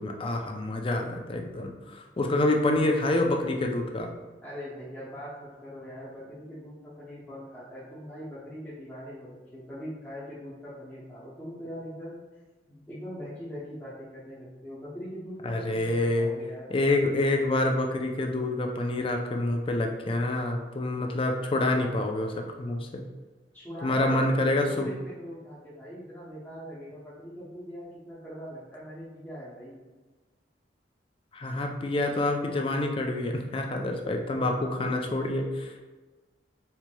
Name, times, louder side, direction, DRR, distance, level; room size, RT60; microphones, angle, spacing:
voice 1, 0.0-4.1 15.4-16.3 16.7-23.0 23.8-24.9 31.3-35.8, left 2 dB, 30° left, 3 dB, 0.4 m, -27 dB
voice 2, 4.4-12.2 12.7-16.7 23.5-29.8, equal, 10° left, -11 dB, 0.8 m, -42 dB
4.4 x 2.8 x 2.2 m, 1.3 s
head